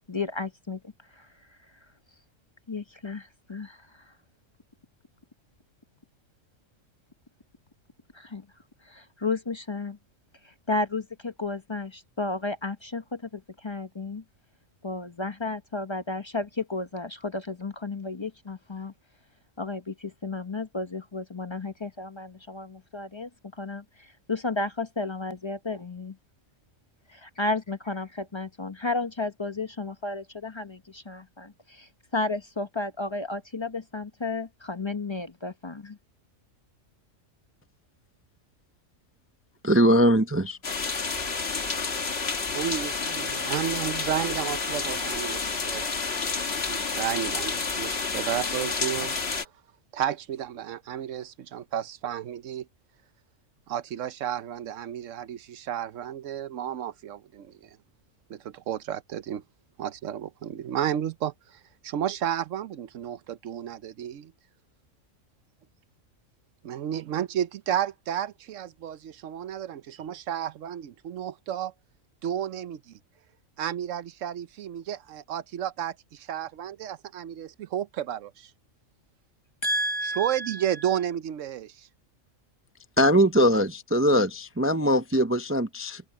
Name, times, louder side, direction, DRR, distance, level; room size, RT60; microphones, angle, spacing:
voice 1, 0.1-0.8 1.1-1.3 2.7-3.8 8.1-8.4 8.9-10.0 10.4-14.2 14.8-18.9 19.6-23.3 23.6-26.2 27.1-36.0 79.6-80.9, left 2 dB, 25° left, 0.7 m, -33 dB
voice 2, 39.6-40.6 83.0-86.0, equal, 20° right, 0.3 m, -21 dB
sound 1, 40.6-49.4, left 4 dB, 50° left, 1.8 m, -30 dB
voice 3, 42.5-45.9 46.6-49.1 49.4-49.5 49.9-52.7 53.7-57.5 58.3-59.4 59.8-64.3 66.6-71.7 72.2-73.0 73.6-78.5 80.2-81.9, right 10 dB, 75° right, 1.1 m, -32 dB
open air
omnidirectional pair, 1.4 m